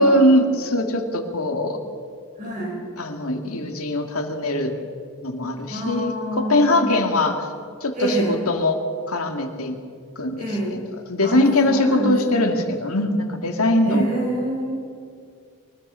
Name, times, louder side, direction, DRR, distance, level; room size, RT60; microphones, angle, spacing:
voice 1, 0.0-1.8 3.0-4.7 5.2-7.4 7.8-8.8 9.1-9.8 10.2-10.8 11.1-14.1, left 1 dB, 85° left, 4 dB, 2.5 m, -21 dB
voice 2, 2.4-2.8 5.7-7.0 7.9-8.4 10.4-10.8 11.2-12.4 13.8-14.7, right 1 dB, 35° right, -4 dB, 5.7 m, -26 dB
24.0 x 20.5 x 5.8 m, 2.2 s
head